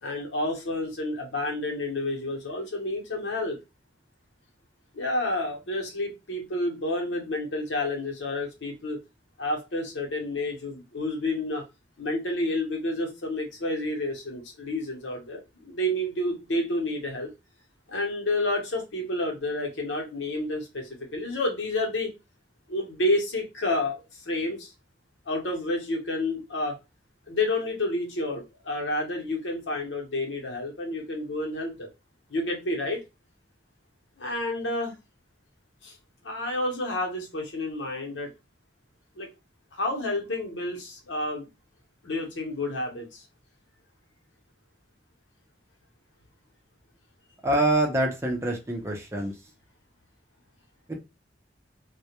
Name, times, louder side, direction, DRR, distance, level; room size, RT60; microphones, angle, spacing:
voice 1, 0.0-3.6 4.9-9.0 9.4-11.6 12.0-17.3 17.9-22.1 22.7-24.7 25.3-26.8 27.3-31.9 32.3-33.0 34.2-34.9 35.8-36.0 36.2-38.3 39.2-39.3 39.7-41.5 42.0-43.3, left 1 dB, 85° left, 1 dB, 0.8 m, -30 dB
voice 2, 47.4-49.3 50.9-51.0, right 1 dB, 15° right, 0 dB, 0.5 m, -25 dB
2.3 x 2.1 x 2.8 m, 0.25 s
head